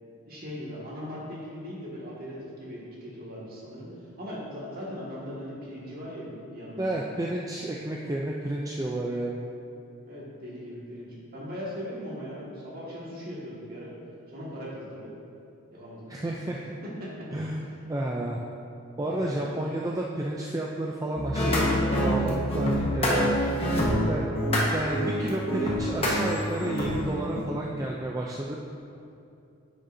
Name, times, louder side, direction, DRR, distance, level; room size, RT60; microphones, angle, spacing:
voice 1, 0.3-3.9 4.2-7.0 10.0-13.9 14.3-15.1 15.7-16.0 17.0-17.3 19.0-19.4 23.4-23.8, equal, 45° right, -6 dB, 1.8 m, -39 dB
voice 2, 6.8-9.4 16.1-16.8 17.3-17.6 17.9-18.4 19.0-21.7 22.0-23.4 24.1-24.3 24.7-28.6, right 1 dB, 15° right, -2 dB, 0.3 m, -31 dB
sound 1, 21.2-27.4, equal, 25° left, 1.2 m, -26 dB
9.6 x 6.5 x 2.6 m, 2.6 s
head